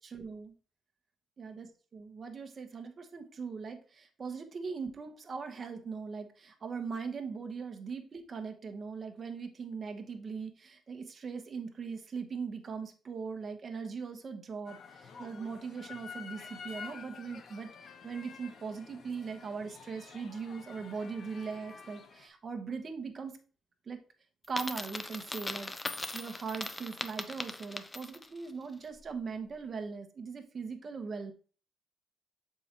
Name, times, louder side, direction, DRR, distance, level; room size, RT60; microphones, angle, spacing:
voice 1, 0.1-0.5 1.4-23.3 23.9-24.0 24.5-31.3, right 5 dB, 40° right, 5 dB, 1.1 m, -40 dB
sound 1, 14.7-22.3, left 5 dB, 60° left, 0.9 m, -49 dB
Coin (dropping), 24.4-28.4, left 2 dB, 20° left, 0.5 m, -39 dB
7.0 x 4.7 x 3.0 m, 0.38 s
cardioid pair, 90°, 0 cm